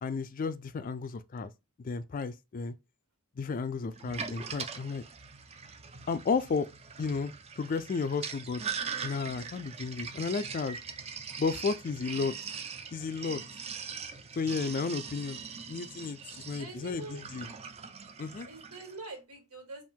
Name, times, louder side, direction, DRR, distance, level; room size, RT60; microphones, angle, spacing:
voice 1, 0.0-1.5 1.8-2.7 3.4-5.0 6.1-6.7 7.0-8.6 9.0-10.8 11.4-12.4 12.9-13.4 14.4-17.5 18.2-18.5, left 4 dB, 40° left, 0.3 m, -33 dB
Sink (filling or washing), 4.0-19.0, right 6 dB, 30° right, 0.4 m, -41 dB
voice 2, 16.5-17.2 18.5-19.8, right 3 dB, 85° right, 2.1 m, -44 dB
3.6 x 2.5 x 4.3 m
head